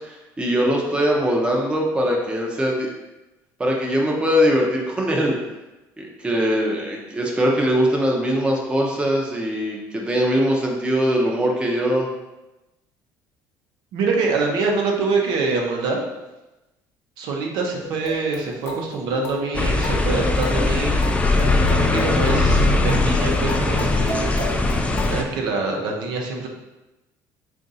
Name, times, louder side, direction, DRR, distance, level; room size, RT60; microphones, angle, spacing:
voice 1, 0.0-2.9 3.6-5.4 6.0-12.1, equal, 15° right, -1 dB, 0.7 m, -21 dB
voice 2, 13.9-16.0 17.2-21.0 21.7-24.3 25.1-26.5, right 3 dB, 75° right, 0 dB, 0.7 m, -25 dB
sound 1, 17.8-25.3, left 2 dB, 50° left, 1.0 m, -34 dB
sound 2, 19.5-25.2, left 2 dB, 15° left, 0.4 m, -20 dB
3.8 x 2.5 x 4.0 m, 1.0 s
cardioid pair, 120°, 7 cm